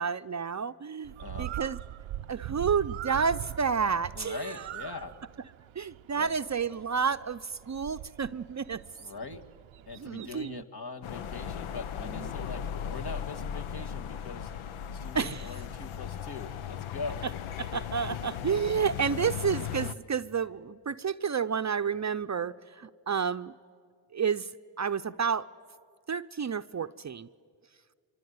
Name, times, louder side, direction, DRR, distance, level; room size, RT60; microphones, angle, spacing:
voice 1, 0.0-1.8 2.3-4.6 5.8-8.8 10.0-10.6 12.1-12.3 15.1-15.5 17.6-23.5 24.1-24.5 24.8-25.5 26.1-27.3, right 6 dB, 35° right, 11 dB, 0.6 m, -30 dB
Bird, 1.0-10.6, right 14 dB, 80° right, 0.6 m, -42 dB
voice 2, 1.2-1.6 4.1-5.1 6.2-6.3 8.7-9.4 9.9-14.5 14.9-17.2 18.0-18.1, left 4 dB, 50° left, 6 dB, 1.9 m, -42 dB
sound 1, 11.0-19.9, left 8 dB, 85° left, 0.8 m, -37 dB
25.0 x 23.5 x 9.5 m, 2.1 s
cardioid pair, 50°, 48 cm